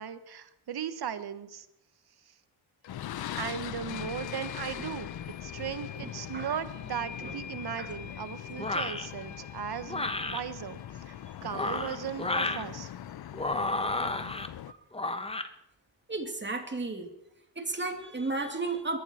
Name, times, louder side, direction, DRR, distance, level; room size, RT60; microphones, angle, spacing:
voice 1, 0.0-1.7 3.4-5.1 5.4-11.1 11.4-12.9, right 8 dB, 55° right, 12 dB, 1.3 m, -37 dB
sound 1, 2.8-2.9 3.9-14.0, left 7 dB, 85° left, 1.7 m, -48 dB
sound 2, 2.9-14.7, left 11 dB, 55° left, 0.7 m, -41 dB
voice 2, 6.0-6.6 7.2-7.3 7.8-7.9 14.7-14.8 16.1-17.1 17.6-19.0, right 3 dB, 25° right, 5 dB, 2.4 m, -34 dB
sound 3, 8.6-9.1 9.9-10.4 11.4-12.6 13.3-14.5 14.9-15.5, left 2 dB, 15° left, 1.1 m, -31 dB
22.0 x 14.0 x 4.4 m, 0.83 s
cardioid pair, 90°, 45 cm